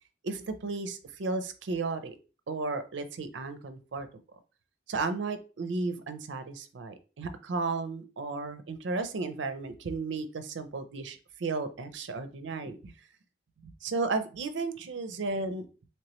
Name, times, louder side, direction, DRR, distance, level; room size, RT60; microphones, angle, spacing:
voice 1, 0.2-2.2 2.5-4.1 4.9-12.9 13.6-15.7, right 3 dB, 75° right, 10 dB, 0.5 m, -34 dB
3.2 x 3.0 x 2.9 m, 0.35 s
head